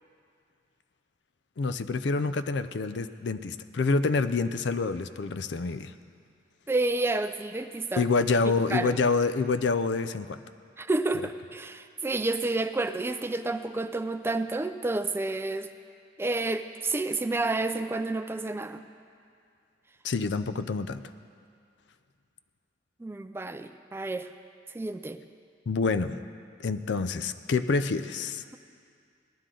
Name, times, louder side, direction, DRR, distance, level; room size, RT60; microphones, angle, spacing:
voice 1, 1.6-5.9 8.0-10.4 20.0-21.0 25.7-26.2 26.6-28.4, left 4 dB, 65° left, 12 dB, 0.5 m, -27 dB
voice 2, 6.7-8.0 8.7-9.0 10.8-15.7 16.2-18.8 23.0-24.3 24.7-25.2, right 2 dB, 15° right, 9 dB, 0.3 m, -30 dB
19.0 x 12.0 x 3.8 m, 2.3 s
head